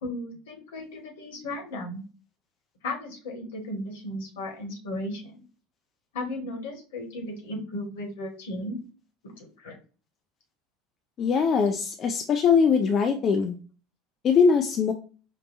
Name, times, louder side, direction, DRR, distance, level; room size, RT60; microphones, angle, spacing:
voice 1, 0.0-2.0 2.8-5.4 6.1-8.8 9.2-9.8, left 1 dB, 65° left, 1 dB, 1.2 m, -35 dB
voice 2, 11.2-13.6 14.2-14.9, left 6 dB, 35° left, 5 dB, 0.4 m, -21 dB
5.5 x 2.2 x 2.5 m, 0.35 s
figure-of-eight pair, 70°, 0 cm